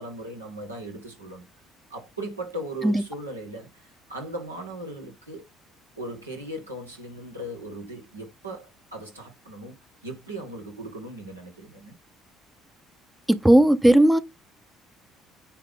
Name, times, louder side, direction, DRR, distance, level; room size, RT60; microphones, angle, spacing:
voice 1, 0.0-1.5 1.9-3.8 4.1-5.4 6.0-9.8 10.0-11.9, right 1 dB, 85° right, 1.8 m, -38 dB
voice 2, 13.3-14.2, right 1 dB, 10° right, 0.7 m, -16 dB
9.4 x 3.7 x 3.7 m
figure-of-eight pair, 55°, 0 cm